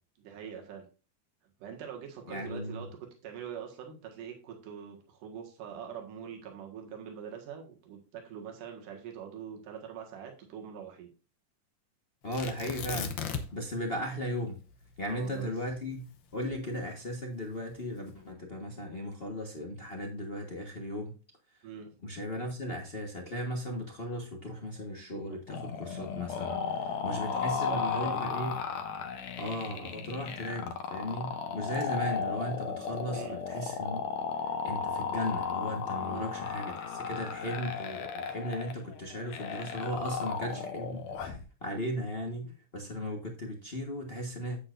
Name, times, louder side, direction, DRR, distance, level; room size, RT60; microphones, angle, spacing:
voice 1, 0.2-0.9 1.6-2.9 3.2-11.1 15.0-15.5 21.6-21.9 26.5-28.3 32.7-32.8 33.1-33.4 36.0-36.3 40.5-40.7 41.7-41.9 42.4-42.5, right 8 dB, 85° right, 2 dB, 3.2 m, -44 dB
voice 2, 2.3-2.9 12.2-13.2 13.5-14.6 15.0-16.1 16.3-21.1 22.0-26.5 26.8-28.6 29.4-34.0 34.6-44.6, equal, 50° left, 1 dB, 0.6 m, -36 dB
Tearing, 12.3-13.7 14.0-14.1 14.6-17.0 17.7-18.2, left 7 dB, 80° left, 1.0 m, -37 dB
sound 1, 25.5-41.4, left 6 dB, 65° left, 2.2 m, -35 dB
9.6 x 8.3 x 2.6 m, 0.34 s
omnidirectional pair, 3.6 m